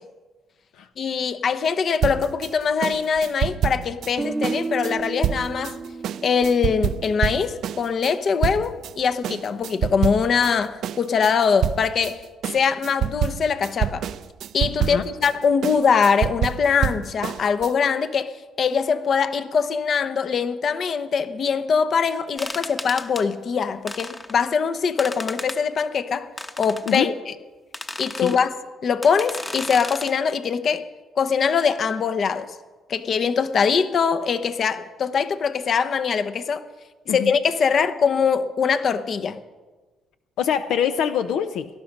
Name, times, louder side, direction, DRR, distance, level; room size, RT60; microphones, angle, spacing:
voice 1, 1.0-5.8 6.2-12.2 12.5-14.1 14.5-26.3 26.6-27.1 28.0-28.5 28.8-30.9 31.2-32.5 32.9-36.7 37.1-39.4, left 6 dB, 55° left, 0.8 m, -22 dB
sound 1, 2.0-8.9 9.2-10.5 10.8-17.7, right 10 dB, 75° right, 0.5 m, -27 dB
Guitar, 4.2-8.1, right 4 dB, 20° right, 0.6 m, -33 dB
sound 2, 22.4-23.2 23.9-24.4 25.0-25.6 26.4-27.0 27.7-28.4 29.0-30.1, left 2 dB, 20° left, 1.0 m, -34 dB
voice 2, 40.4-41.7, left 8 dB, 85° left, 0.6 m, -24 dB
18.0 x 12.0 x 5.3 m
cardioid pair, 95°, 0 cm